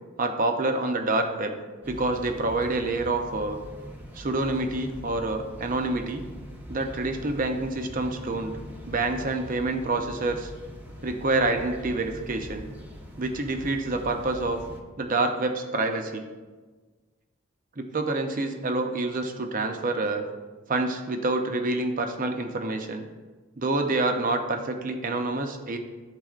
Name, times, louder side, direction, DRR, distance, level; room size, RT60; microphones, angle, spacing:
voice 1, 0.2-1.6 1.9-3.6 4.2-6.3 6.7-8.5 8.9-10.5 11.0-12.6 13.2-14.6 15.0-16.2 17.8-20.3 20.7-23.0 23.6-25.8, right 2 dB, 40° right, 5 dB, 0.6 m, -27 dB
sound 1, 1.8-14.8, equal, 10° right, 0.8 m, -42 dB
12.0 x 4.0 x 2.4 m, 1.3 s
head